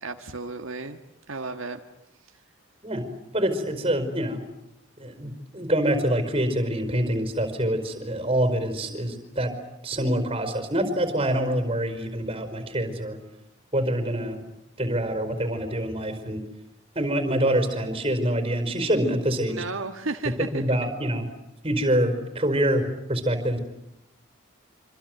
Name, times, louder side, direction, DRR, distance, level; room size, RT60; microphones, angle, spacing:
voice 1, 0.0-1.0 1.3-1.8 19.5-20.9, right 3 dB, 75° right, 5 dB, 1.6 m, -33 dB
voice 2, 3.3-4.4 5.0-9.5 9.8-13.2 13.7-14.4 14.8-16.4 16.9-19.6 20.4-21.3 21.6-23.6, right 1 dB, 25° right, 8 dB, 5.0 m, -25 dB
26.5 x 26.5 x 8.0 m, 0.86 s
head